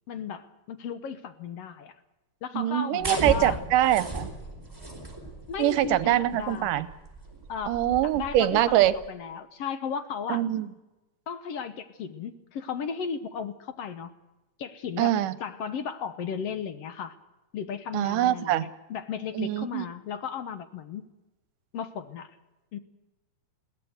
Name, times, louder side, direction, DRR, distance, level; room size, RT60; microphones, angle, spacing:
voice 1, 0.1-1.9 2.4-3.6 5.5-6.8 7.5-10.4 11.3-14.1 14.6-17.2 17.5-21.1 21.7-22.3 22.7-22.8, left 7 dB, 65° left, 11 dB, 1.7 m, -35 dB
voice 2, 2.5-4.3 5.6-6.9 7.7-8.9 10.3-10.7 15.0-15.4 17.9-18.7 19.4-19.9, right 13 dB, 80° right, 16 dB, 2.4 m, -24 dB
sound 1, 3.0-9.1, right 2 dB, 5° right, 4.2 m, -37 dB
21.5 x 17.0 x 7.9 m, 1.1 s
omnidirectional pair, 3.7 m